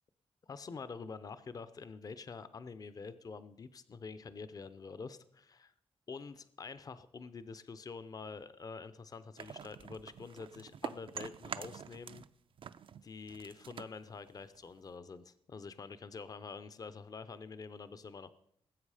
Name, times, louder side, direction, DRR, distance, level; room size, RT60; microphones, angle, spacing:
voice 1, 0.5-5.7 6.1-12.2 13.0-18.3, left 4 dB, 35° left, 13 dB, 0.6 m, -47 dB
sound 1, 9.4-12.3 12.6-15.0, right 7 dB, 55° right, 0.5 m, -46 dB
19.0 x 8.1 x 4.9 m, 0.71 s
wide cardioid pair, 155°, 10 cm